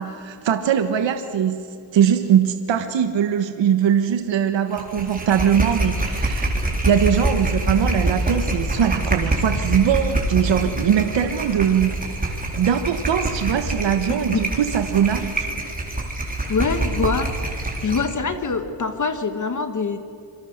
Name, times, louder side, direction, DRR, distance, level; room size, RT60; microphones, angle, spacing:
voice 1, 0.0-1.6 1.9-6.6 6.8-15.5, right 8 dB, 65° right, 7 dB, 1.4 m, -21 dB
sound 1, 4.7-18.1, right 1 dB, 20° right, 4.1 m, -25 dB
voice 2, 16.5-17.3 17.8-20.0, left 4 dB, 40° left, 8 dB, 1.5 m, -24 dB
27.5 x 24.0 x 6.7 m, 2.7 s
cardioid pair, 120°, 47 cm